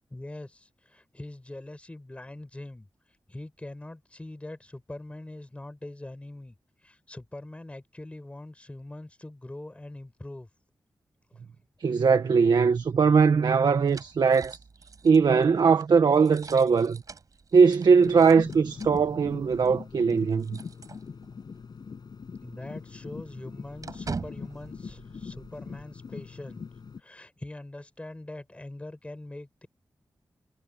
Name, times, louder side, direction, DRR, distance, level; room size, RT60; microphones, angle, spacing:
voice 1, 0.1-2.9 3.3-6.5 6.8-10.5 11.3-11.4 15.1-15.4 22.4-26.6 27.0-29.7, left 1 dB, 15° left, 4.9 m, -42 dB
voice 2, 11.8-14.6 15.0-17.0 17.5-20.6, right 5 dB, 70° right, 1.6 m, -20 dB
sound 1, 12.7-21.6 21.9-22.0 22.4-25.8, right 4 dB, 50° right, 7.7 m, -45 dB
sound 2, 18.0-27.0, left 5 dB, 65° left, 7.4 m, -42 dB
wide cardioid pair, 145°, 8 cm